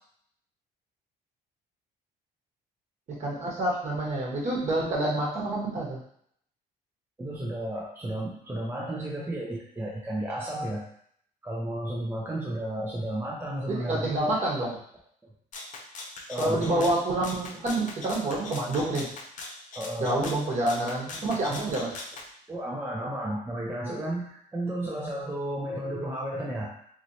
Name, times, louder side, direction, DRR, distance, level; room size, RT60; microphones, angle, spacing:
voice 1, 3.1-6.0 13.7-14.8 16.4-19.1 20.0-22.0, right 1 dB, 45° right, -3 dB, 1.2 m, -28 dB
voice 2, 7.2-10.8 11.4-14.2 16.3-16.9 19.7-20.1 22.5-26.8, right 1 dB, 15° right, -4 dB, 0.5 m, -33 dB
Rattle (instrument), 15.5-22.3, left 3 dB, 50° left, 0.6 m, -41 dB
3.0 x 3.0 x 2.7 m, 0.65 s
cardioid pair, 110°, 17 cm